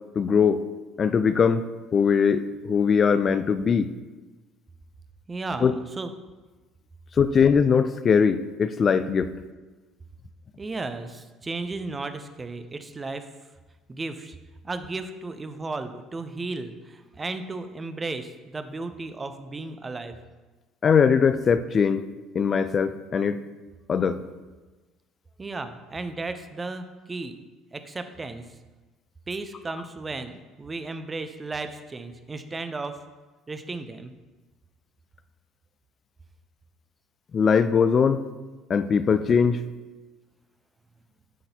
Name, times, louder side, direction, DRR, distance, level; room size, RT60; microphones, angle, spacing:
voice 1, 0.2-0.6 1.0-1.7 1.9-3.9 5.6-5.7 7.2-9.3 20.8-22.0 22.3-23.4 23.9-24.2 37.3-38.2 38.7-39.6, left 6 dB, 40° left, 13 dB, 0.3 m, -21 dB
voice 2, 5.3-6.1 10.6-13.3 13.9-14.4 14.6-20.2 25.4-27.4 27.7-28.4 29.3-33.0 33.5-34.1, right 3 dB, 25° right, 9 dB, 0.5 m, -34 dB
9.2 x 3.9 x 2.8 m, 1.2 s
figure-of-eight pair, 60°, 0 cm